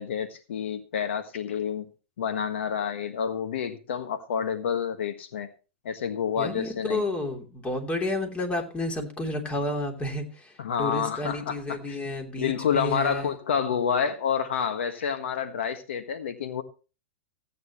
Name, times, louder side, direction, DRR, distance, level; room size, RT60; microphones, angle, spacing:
voice 1, 0.0-1.9 2.2-5.5 5.8-7.0 10.6-11.6 11.9-12.0 12.4-16.6, left 7 dB, 75° left, 8 dB, 1.5 m, -28 dB
voice 2, 6.4-13.3, left 2 dB, 20° left, 4 dB, 3.1 m, -31 dB
16.0 x 9.3 x 3.1 m, 0.33 s
hypercardioid pair, 110°, 7 cm